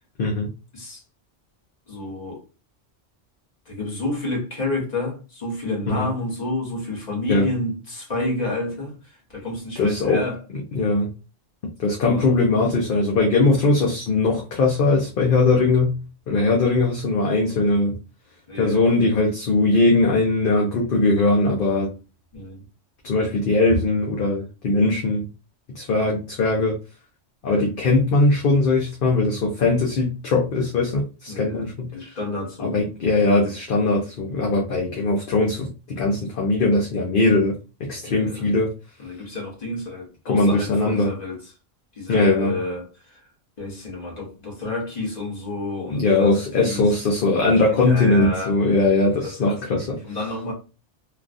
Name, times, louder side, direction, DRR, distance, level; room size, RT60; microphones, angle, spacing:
voice 1, 0.2-0.5 5.9-6.1 7.3-7.5 9.8-10.2 10.5-11.1 11.8-16.0 16.3-18.0 18.6-21.9 23.0-25.3 25.7-26.8 27.4-31.9 32.6-37.5 37.8-38.7 40.3-41.1 42.1-42.6 45.9-49.9, left 2 dB, 55° left, 0.8 m, -20 dB
voice 2, 1.9-2.4 3.7-10.4 12.0-12.3 18.5-18.8 22.3-22.6 27.5-27.8 31.3-32.8 38.0-38.5 39.0-41.4 41.9-43.2 43.6-47.0 47.8-48.6 49.5-50.5, left 2 dB, 35° left, 1.3 m, -30 dB
3.3 x 2.4 x 2.5 m
omnidirectional pair, 1.2 m